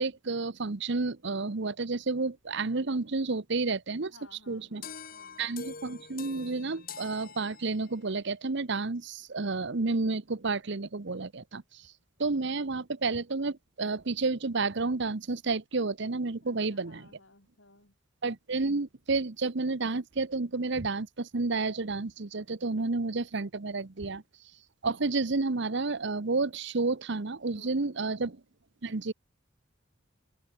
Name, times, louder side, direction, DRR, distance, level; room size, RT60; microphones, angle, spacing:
voice 1, 0.0-4.1 4.5-4.9 5.4-11.6 12.2-17.1 18.2-24.2 24.8-28.4 28.8-29.1, right 3 dB, 60° right, 0.9 m, -30 dB
voice 2, 4.0-5.4 16.4-17.9 27.5-28.1, left 2 dB, 70° left, 6.5 m, -58 dB
sound 1, 4.8-8.1, left 6 dB, 45° left, 3.9 m, -45 dB
head